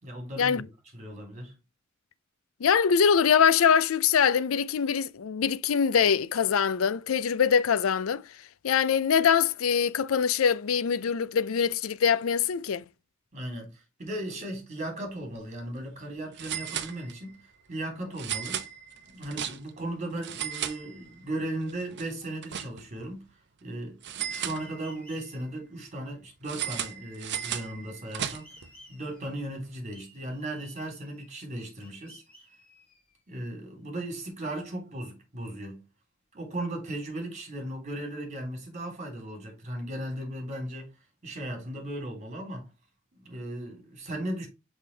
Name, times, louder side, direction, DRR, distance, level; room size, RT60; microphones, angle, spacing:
voice 1, 0.0-0.7 0.9-1.5 13.3-17.4 17.7-18.6 19.1-23.2 23.6-28.5 28.9-32.2 33.3-35.8 36.3-40.9 41.2-42.7 43.1-44.5, right 1 dB, 35° right, 3.4 m, -37 dB
voice 2, 2.6-8.2 8.6-12.8, left 7 dB, 70° left, 0.4 m, -23 dB
sound 1, 15.2-15.4 15.7-15.8 16.3-17.4 18.1-19.9 20.2-21.3 21.7-23.1 24.0-25.1 26.4-28.7, right 9 dB, 55° right, 0.8 m, -36 dB
sound 2, 24.6-25.4 28.2-29.4 29.9-31.4 31.8-33.4, equal, 10° left, 4.1 m, -55 dB
6.0 x 5.2 x 3.3 m
head